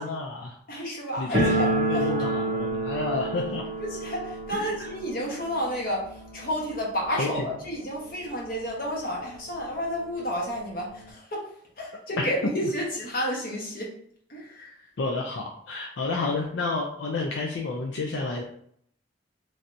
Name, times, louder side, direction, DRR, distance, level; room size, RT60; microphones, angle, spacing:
voice 1, 0.0-0.5 1.2-3.6 4.5-4.9 7.1-7.5 12.2-12.3 15.0-18.4, left 3 dB, 75° left, 0 dB, 0.4 m, -30 dB
voice 2, 0.7-1.7 1.9-2.1 3.8-11.4 11.8-13.9 14.3-14.7, equal, 50° left, -2 dB, 1.0 m, -31 dB
sound 1, 1.3-8.1 8.3-8.4 8.7-8.8 9.5-9.6 9.9-11.1, right 1 dB, 50° right, 0.6 m, -30 dB
3.3 x 2.7 x 2.5 m, 0.64 s
head